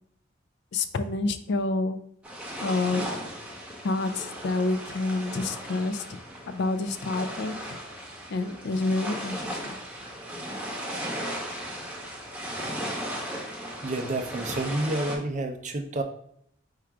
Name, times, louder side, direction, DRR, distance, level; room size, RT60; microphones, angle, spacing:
voice 1, 0.7-2.0 2.6-3.1 3.8-6.0 6.5-7.8 8.3-9.8, left 3 dB, 55° left, 10 dB, 0.4 m, -28 dB
sound 1, 2.2-15.2, equal, 5° right, 0.8 m, -36 dB
voice 2, 13.8-16.0, right 2 dB, 35° right, 5 dB, 0.5 m, -29 dB
4.4 x 2.4 x 4.7 m, 0.68 s
head